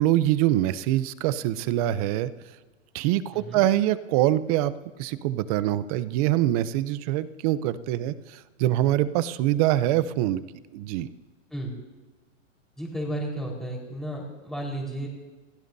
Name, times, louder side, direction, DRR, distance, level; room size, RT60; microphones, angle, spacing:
voice 1, 0.0-2.3 2.9-10.4 10.7-11.1, right 13 dB, 30° right, 15 dB, 0.6 m, -24 dB
voice 2, 12.8-15.1, right 1 dB, ahead, -2 dB, 4.3 m, -33 dB
29.5 x 16.5 x 2.7 m, 1.3 s
hypercardioid pair, 140°, 38 cm